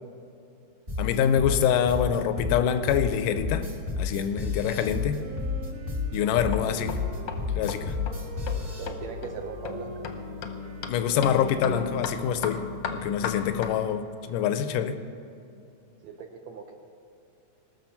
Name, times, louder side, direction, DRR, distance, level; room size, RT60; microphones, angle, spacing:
sound 1, 0.9-8.9, left 4 dB, 45° right, 0.6 m, -31 dB
voice 1, 1.0-3.7 4.0-5.2 6.1-7.0 7.6-8.0 10.9-12.6 12.9-15.0, left 8 dB, 90° left, 10 dB, 2.3 m, -25 dB
Wind instrument woodwind instrument, 4.6-13.2, right 4 dB, 85° right, 2.5 m, -45 dB
sound 2, 6.2-13.7, left 6 dB, 70° left, 1.5 m, -36 dB
voice 2, 8.8-10.1 16.0-16.8, right 6 dB, 70° right, 3 dB, 1.9 m, -39 dB
20.0 x 6.6 x 5.8 m, 2.7 s
omnidirectional pair, 3.7 m